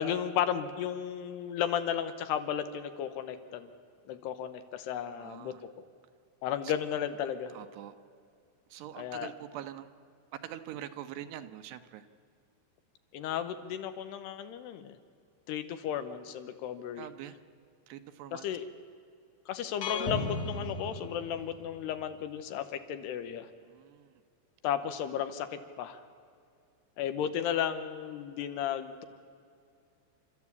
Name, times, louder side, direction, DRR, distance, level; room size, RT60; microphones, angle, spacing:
voice 1, 0.0-3.7 4.1-5.5 6.4-7.5 9.0-9.3 13.1-15.0 15.5-17.1 18.3-18.6 19.5-23.5 24.6-26.0 27.0-29.1, left 9 dB, 80° left, 10 dB, 2.9 m, -34 dB
voice 2, 5.2-5.6 6.6-6.7 7.5-7.9 8.7-9.9 10.4-12.1 17.0-17.4 17.9-18.5 23.6-24.2, right 11 dB, 75° right, 9 dB, 2.9 m, -44 dB
sound 1, 19.8-21.8, left 2 dB, 55° left, 2.0 m, -35 dB
30.0 x 13.5 x 8.4 m, 2.4 s
omnidirectional pair, 5.0 m